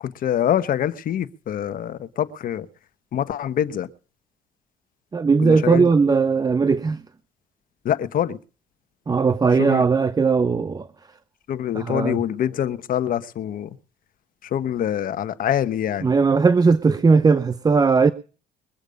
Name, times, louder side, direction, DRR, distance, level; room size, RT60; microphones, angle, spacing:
voice 1, 0.0-2.7 3.1-3.9 5.4-5.9 7.8-8.4 9.6-9.8 11.5-13.7 14.5-16.1, left 10 dB, 55° left, 1.2 m, -25 dB
voice 2, 5.1-7.0 9.1-10.9 11.7-12.2 16.0-18.1, right 4 dB, 20° right, 0.7 m, -18 dB
22.5 x 8.1 x 5.2 m
cardioid pair, 110°, 17 cm